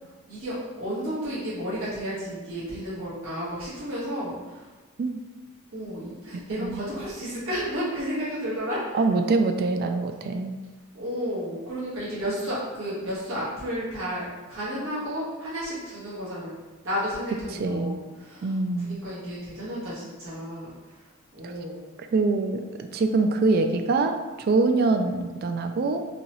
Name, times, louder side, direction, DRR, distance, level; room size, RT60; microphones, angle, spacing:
voice 1, 0.0-4.7 5.7-9.0 10.9-16.5 16.8-21.9, equal, 85° right, -10 dB, 1.4 m, -32 dB
voice 2, 8.9-10.6 17.6-18.0 18.4-19.0 22.1-26.0, right 3 dB, 50° right, 6 dB, 0.3 m, -24 dB
3.9 x 2.8 x 3.0 m, 1.3 s
head